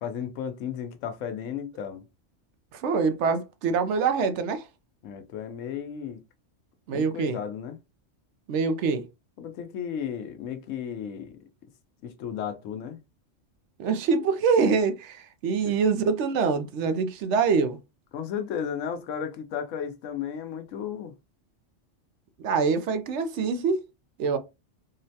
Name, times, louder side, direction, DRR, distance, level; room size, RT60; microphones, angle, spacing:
voice 1, 0.0-2.1 5.0-6.2 6.9-7.8 9.4-11.4 12.0-13.0 15.6-15.7 18.1-21.1, left 8 dB, 90° left, 1.0 m, -34 dB
voice 2, 2.7-4.6 6.9-7.4 8.5-9.1 13.8-17.8 22.4-23.8 24.2-24.4, right 5 dB, 70° right, 0.9 m, -25 dB
3.8 x 2.1 x 2.7 m
omnidirectional pair, 1.3 m